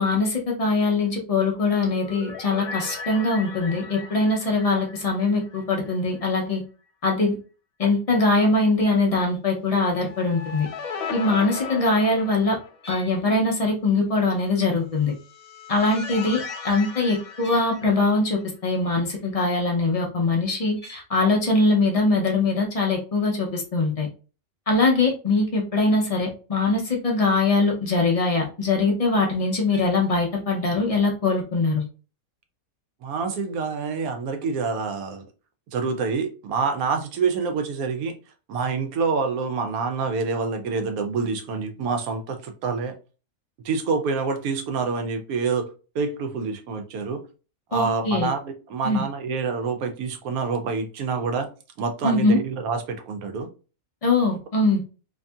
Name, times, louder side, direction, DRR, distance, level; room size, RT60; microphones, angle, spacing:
voice 1, 0.0-6.6 7.0-7.4 7.8-10.7 11.1-12.6 12.8-15.1 15.7-16.4 16.6-24.1 24.7-31.8 47.7-48.3 48.8-49.0 52.0-52.4 54.0-54.8, left 3 dB, 55° left, 0.4 m, -22 dB
sound 1, 1.7-6.0 6.2-6.3 9.9-13.0 15.0-18.4, left 5 dB, 85° left, 1.1 m, -37 dB
voice 2, 33.0-35.2 35.7-38.1 38.5-42.9 43.6-45.7 45.9-47.2 47.7-51.5 51.8-53.5, right 4 dB, 85° right, 1.1 m, -27 dB
2.8 x 2.6 x 2.3 m
omnidirectional pair, 1.5 m